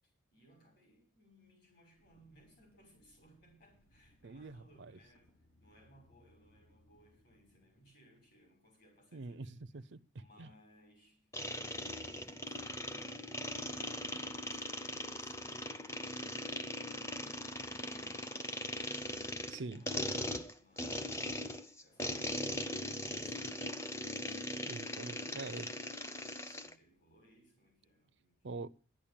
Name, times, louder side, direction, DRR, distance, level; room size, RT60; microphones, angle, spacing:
voice 1, 0.0-9.9 10.1-20.0 20.2-24.5 25.0-28.5, equal, 45° left, 6.6 m, -65 dB
sound 1, 1.9-7.8, equal, 85° left, 6.7 m, -69 dB
voice 2, 4.2-4.9 9.1-10.0 10.4-10.5 19.5-19.8 24.6-25.7 28.4-28.7, right 3 dB, 55° right, 0.5 m, -44 dB
sound 2, 11.3-26.7, left 1 dB, 15° left, 0.7 m, -40 dB
11.0 x 8.8 x 8.8 m
head